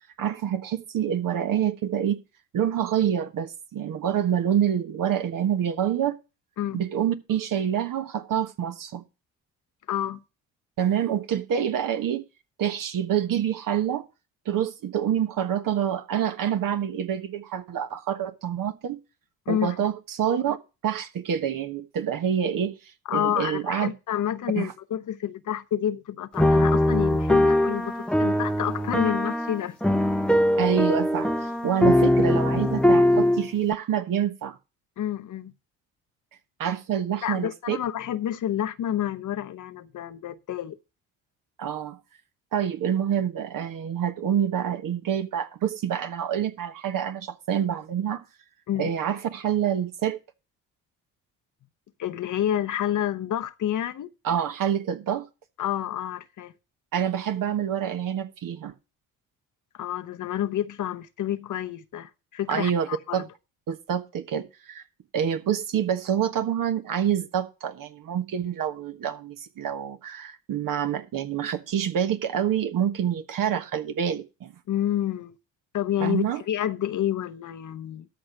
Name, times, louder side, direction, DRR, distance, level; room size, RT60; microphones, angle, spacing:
voice 1, 0.2-2.2 2.5-6.2 6.7-9.0 10.8-12.2 12.6-14.0 14.4-19.0 19.5-20.6 20.8-22.8 23.1-23.9 24.5-24.7 30.6-34.6 36.6-37.8 41.6-42.0 42.5-48.2 48.8-50.2 54.2-55.3 56.9-58.7 62.5-63.2 63.7-64.8 65.1-74.5 76.0-76.4, right 9 dB, 55° right, 1.3 m, -27 dB
voice 2, 9.9-10.2 19.5-19.9 23.1-29.8 35.0-35.5 37.2-40.8 48.7-48.9 52.0-54.1 55.6-56.5 59.7-63.3 74.7-75.4 75.7-78.1, left 11 dB, 50° left, 0.9 m, -29 dB
sound 1, 26.4-33.7, left 1 dB, ahead, 0.8 m, -21 dB
13.0 x 5.2 x 5.9 m
hypercardioid pair, 50°, 39 cm